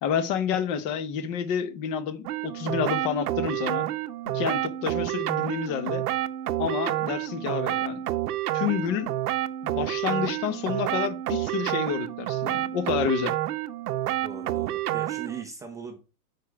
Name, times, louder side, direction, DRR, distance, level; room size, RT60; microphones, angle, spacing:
voice 1, 0.0-3.9 4.3-6.0 6.6-8.0 8.5-9.1 9.6-13.4, left 8 dB, 35° left, 1.1 m, -29 dB
sound 1, 2.3-15.4, right 14 dB, 70° right, 0.8 m, -29 dB
voice 2, 14.2-16.0, right 6 dB, 5° right, 0.5 m, -40 dB
8.2 x 5.1 x 4.6 m
supercardioid pair, 145°, 46 cm